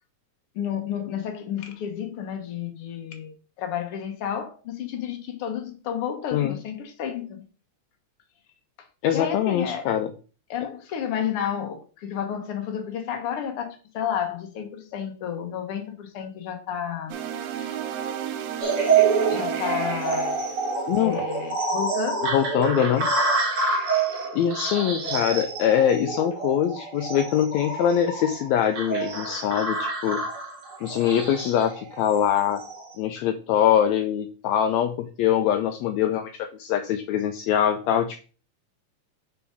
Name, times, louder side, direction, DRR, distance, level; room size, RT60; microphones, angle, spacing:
voice 1, 0.5-7.4 9.1-9.9 10.5-17.2 17.6-17.8 19.3-20.4 21.0-22.3, left 8 dB, 55° left, 1.8 m, -31 dB
voice 2, 9.0-10.1 20.9-21.2 22.3-23.1 24.3-30.2 30.8-32.6 33.0-38.2, left 9 dB, 80° left, 1.7 m, -23 dB
sound 1, 17.1-21.4, right 9 dB, 80° right, 2.0 m, -33 dB
sound 2, 18.6-32.9, right 4 dB, 50° right, 2.7 m, -27 dB
5.1 x 4.8 x 5.1 m
omnidirectional pair, 3.6 m